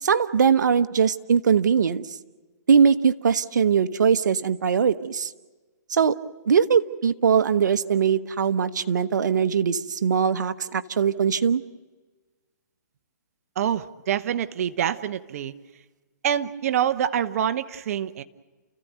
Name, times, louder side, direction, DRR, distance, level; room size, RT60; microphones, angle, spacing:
voice 1, 0.0-2.1 2.7-5.3 5.9-6.1 6.4-11.6, right 7 dB, 75° right, 11 dB, 1.1 m, -21 dB
voice 2, 13.6-15.5 16.2-18.2, right 9 dB, 50° right, 12 dB, 1.0 m, -26 dB
29.5 x 15.0 x 9.4 m, 1.3 s
hypercardioid pair, 145°, 10 cm